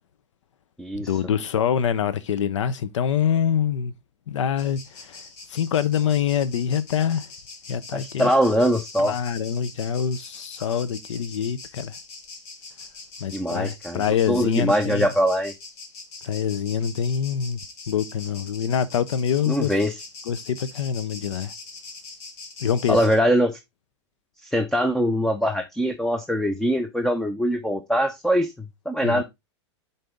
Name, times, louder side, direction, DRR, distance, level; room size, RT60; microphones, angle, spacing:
voice 1, 1.0-3.9 4.3-5.2 5.5-7.3 7.7-8.3 9.0-11.9 13.2-15.1 16.2-17.6 17.9-19.7 20.3-21.5 22.6-23.0 29.0-29.2, left 8 dB, 80° left, 0.5 m, -25 dB
sound 1, 4.6-23.2, left 3 dB, 45° left, 1.8 m, -43 dB
voice 2, 7.9-9.1 13.3-14.0 14.3-15.5 19.5-20.0 22.9-23.6 24.4-28.5 28.9-29.2, equal, 5° left, 0.5 m, -22 dB
7.5 x 4.1 x 3.4 m
hypercardioid pair, 125°, 15 cm